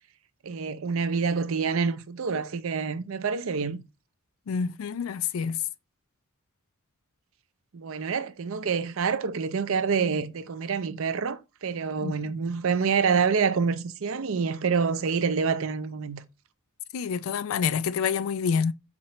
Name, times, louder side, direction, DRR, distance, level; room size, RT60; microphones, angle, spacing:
voice 1, 0.4-3.8 7.7-16.2, right 5 dB, 70° right, 0.5 m, -27 dB
voice 2, 4.5-5.6 12.0-12.2 16.9-18.7, left 6 dB, 75° left, 0.3 m, -27 dB
4.3 x 2.9 x 4.2 m
head